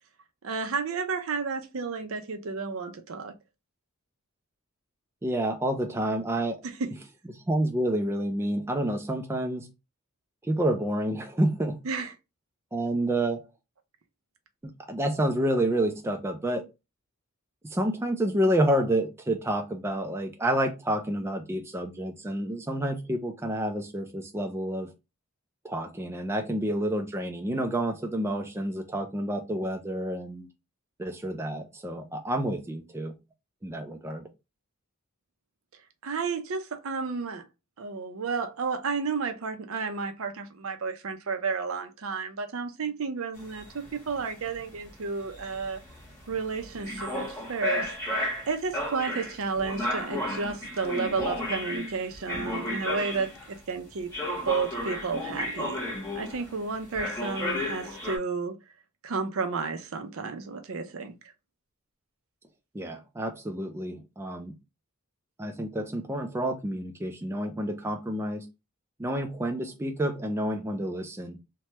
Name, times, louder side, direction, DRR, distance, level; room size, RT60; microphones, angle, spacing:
voice 1, 0.4-3.3 6.8-6.9 11.8-12.1 36.0-37.4 37.8-45.8 46.3-47.9 48.5-53.3 53.7-54.1 54.4-55.8 56.1-58.6 59.0-61.1, right 4 dB, 65° right, 0.5 m, -32 dB
voice 2, 5.2-6.6 7.3-9.7 10.4-11.8 12.7-13.5 14.9-16.7 17.6-24.9 25.6-30.5 31.0-33.1 33.6-34.3 62.7-64.5 65.4-68.5 69.0-71.4, right 1 dB, 10° right, 0.3 m, -29 dB
sound 1, 43.4-53.6 54.1-56.6 56.9-58.2, left 1 dB, 10° left, 1.1 m, -33 dB
3.2 x 2.2 x 2.8 m
head